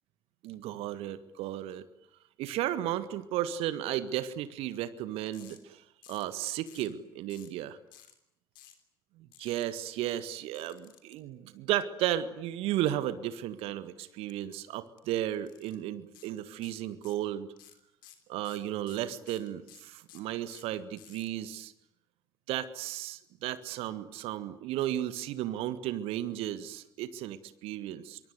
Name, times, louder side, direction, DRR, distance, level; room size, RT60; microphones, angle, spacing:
voice 1, 0.4-1.9 2.4-7.8 9.4-17.5 18.3-21.7 22.5-28.3, right 12 dB, 55° right, 13 dB, 1.7 m, -34 dB
sound 1, 5.3-5.6 6.0-6.3 6.7-6.9 7.3-7.6 7.9-8.1 8.5-8.8 9.3-9.6 10.5-11.1 14.3-14.5 14.9-15.0 15.5-15.8 16.1-16.3 16.6-17.3 17.6-21.3, left 12 dB, 70° left, 3.4 m, -55 dB
26.5 x 24.0 x 9.4 m, 0.80 s
figure-of-eight pair, 55°, 12 cm